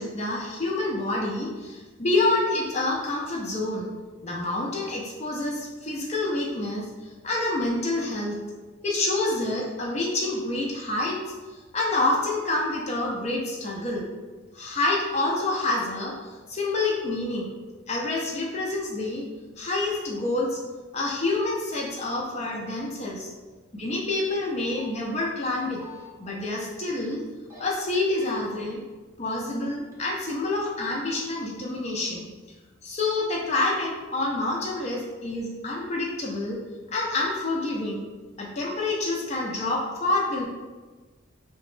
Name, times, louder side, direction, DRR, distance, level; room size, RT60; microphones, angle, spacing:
voice 1, 0.0-3.9 4.2-8.4 8.8-11.2 11.7-14.1 14.5-17.5 17.9-19.3 19.6-20.6 20.9-23.3 23.7-25.8 26.2-27.2 27.6-28.8 29.2-32.3 32.8-36.6 36.9-38.0 38.4-40.4, left 2 dB, 30° left, -2 dB, 0.5 m, -27 dB
sound 1, 24.8-24.9 25.5-26.1 27.3-27.6 27.9-28.3 29.0-29.5 29.9-30.0, left 5 dB, 15° right, 0.6 m, -47 dB
2.9 x 2.2 x 3.1 m, 1.3 s
head